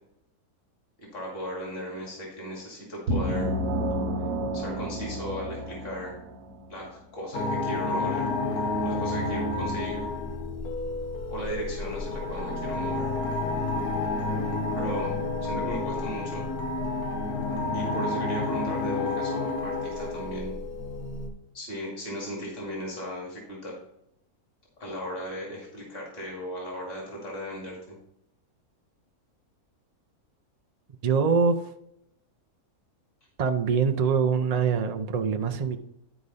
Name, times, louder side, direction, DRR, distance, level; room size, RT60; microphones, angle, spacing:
voice 1, 1.0-3.5 4.5-6.1 6.7-8.3 8.8-10.0 11.3-13.1 14.7-15.2 15.4-16.5 17.7-20.6 21.5-23.8 24.8-28.0, equal, 40° left, -2 dB, 2.5 m, -36 dB
sound 1, 3.1-6.6, equal, 75° right, 1.5 m, -30 dB
sound 2, 7.3-21.3, left 2 dB, 80° left, 1.6 m, -30 dB
voice 2, 31.0-31.6 33.4-35.8, right 6 dB, 55° right, 5 dB, 0.4 m, -24 dB
11.0 x 5.0 x 4.1 m, 0.80 s
omnidirectional pair, 1.6 m